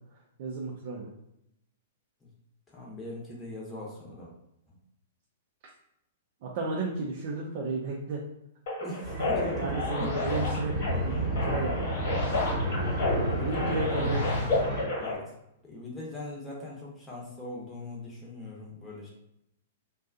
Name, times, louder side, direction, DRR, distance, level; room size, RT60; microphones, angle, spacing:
voice 1, 0.4-1.1 6.4-8.2 9.6-11.2 11.4-12.3 13.4-14.6, right 3 dB, 50° right, -2 dB, 0.5 m, -33 dB
voice 2, 2.7-4.3 4.7-4.8 8.8-10.1 13.3-14.3 15.0-15.2 15.6-19.1, left 1 dB, 10° left, -5 dB, 0.9 m, -41 dB
sound 1, 8.7-15.2, left 2 dB, 55° left, 1.2 m, -31 dB
sound 2, 9.0-14.8, right 1 dB, 25° right, 1.1 m, -31 dB
2.5 x 2.3 x 2.5 m, 0.81 s
figure-of-eight pair, 110°, 0 cm